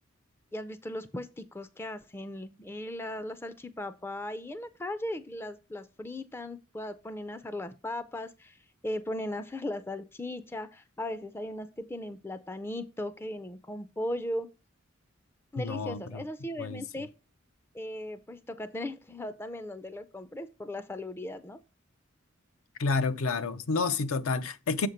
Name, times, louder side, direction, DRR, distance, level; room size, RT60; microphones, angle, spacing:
voice 1, 0.5-14.5 15.5-17.1 17.7-21.6, left 1 dB, 10° left, 0.3 m, -37 dB
voice 2, 15.6-16.2 16.6-16.8 22.8-24.9, left 4 dB, 85° left, 0.6 m, -29 dB
7.1 x 5.0 x 4.3 m
head